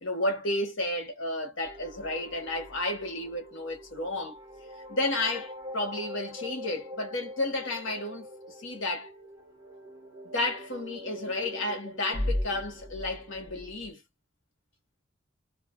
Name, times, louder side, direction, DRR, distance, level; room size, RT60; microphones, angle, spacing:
voice 1, 0.0-4.4 4.9-9.1 10.3-14.0, left 2 dB, 85° left, 1.2 m, -32 dB
sound 1, 1.6-13.9, equal, 20° right, 1.0 m, -40 dB
2.8 x 2.5 x 2.3 m
head